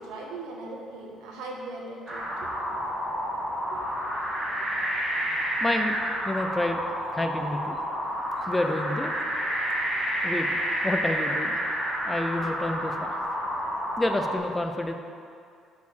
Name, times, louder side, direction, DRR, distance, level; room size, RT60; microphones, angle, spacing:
voice 1, 0.0-2.9 3.7-3.9 4.2-4.3, right 2 dB, 90° right, -1 dB, 1.4 m, -40 dB
sound 1, 2.1-14.4, equal, 15° right, 1.7 m, -29 dB
voice 2, 5.6-5.9 6.2-6.8 7.1-7.8 8.5-9.1 10.2-11.6 12.0-13.2 14.0-14.9, left 1 dB, 10° left, 5 dB, 0.5 m, -29 dB
6.6 x 5.6 x 6.4 m, 2.3 s
cardioid pair, 150°, 0 cm